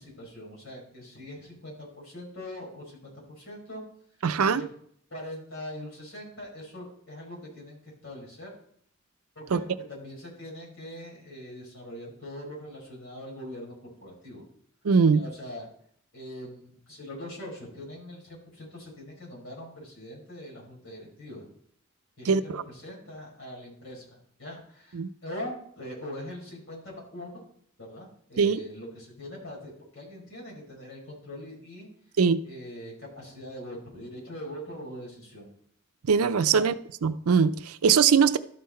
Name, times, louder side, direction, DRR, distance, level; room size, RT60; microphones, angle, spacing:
voice 1, 0.0-3.8 4.4-4.7 5.1-8.5 9.3-13.7 14.0-14.4 15.1-15.7 16.1-21.5 22.2-27.4 27.8-31.9 32.4-35.5 36.5-36.6, left 1 dB, 65° left, 4.8 m, -42 dB
voice 2, 4.2-4.6 9.5-9.6 14.8-15.2 22.3-22.6 24.9-25.1 28.4-28.6 32.2-32.4 36.1-36.8 37.0-38.4, right 6 dB, 90° right, 0.5 m, -21 dB
12.5 x 5.7 x 4.2 m
head